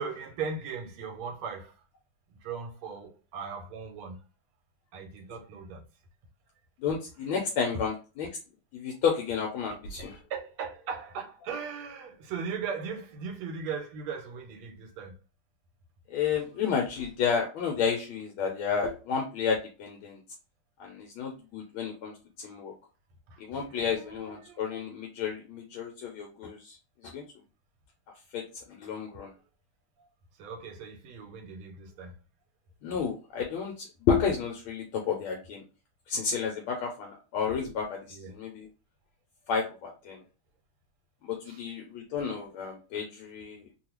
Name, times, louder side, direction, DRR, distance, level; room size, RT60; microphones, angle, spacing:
voice 1, 0.0-1.8 2.4-4.2 4.9-5.8 10.3-15.2 23.3-24.6 30.0-30.1 30.4-32.2 38.1-38.3 41.4-41.6, right 5 dB, 80° right, 1.6 m, -38 dB
voice 2, 6.8-8.3 8.7-10.2 16.1-20.2 20.8-22.1 22.4-22.7 23.4-26.8 27.1-27.2 28.3-28.4 28.7-29.3 32.8-35.6 36.1-38.7 39.5-40.2 41.2-43.6, left 6 dB, 75° left, 1.4 m, -31 dB
3.5 x 2.3 x 3.0 m
omnidirectional pair, 2.4 m